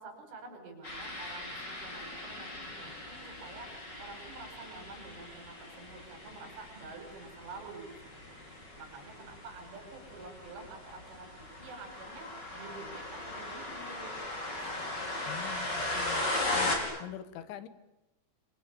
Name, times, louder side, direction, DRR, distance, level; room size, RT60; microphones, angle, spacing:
voice 1, 0.0-8.1 8.4-15.4, right 3 dB, 85° right, 5 dB, 8.0 m, -49 dB
sound 1, 0.8-16.8, left 2 dB, 20° left, 5.6 m, -38 dB
voice 2, 15.3-16.2 16.5-17.7, left 10 dB, 75° left, 13 dB, 3.7 m, -44 dB
28.5 x 24.0 x 8.7 m, 1.0 s
omnidirectional pair, 5.5 m